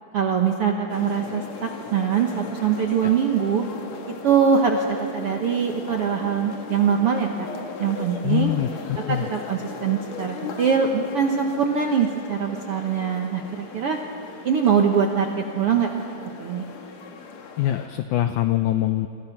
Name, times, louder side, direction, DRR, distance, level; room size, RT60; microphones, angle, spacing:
voice 1, 0.1-3.6 4.2-7.5 7.8-8.5 9.1-14.0 14.4-15.9 16.2-16.6, right 7 dB, 65° right, 2 dB, 1.4 m, -23 dB
sound 1, 0.9-17.9, left 5 dB, 55° left, 2.6 m, -38 dB
voice 2, 8.2-9.2 17.6-19.1, left 13 dB, 80° left, 9 dB, 1.7 m, -23 dB
28.5 x 23.5 x 6.0 m, 2.7 s
omnidirectional pair, 4.3 m